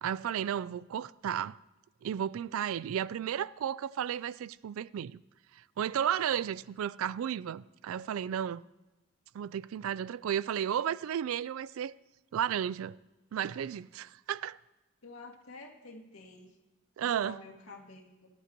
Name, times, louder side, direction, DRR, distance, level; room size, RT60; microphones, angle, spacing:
voice 1, 0.0-1.6 2.0-5.2 5.8-8.6 9.3-11.9 12.3-13.0 13.3-14.6 17.0-17.4, right 9 dB, 75° right, 0.3 m, -33 dB
voice 2, 15.0-16.6 17.0-18.3, left 3 dB, 80° left, 2.0 m, -49 dB
18.0 x 12.5 x 2.9 m
head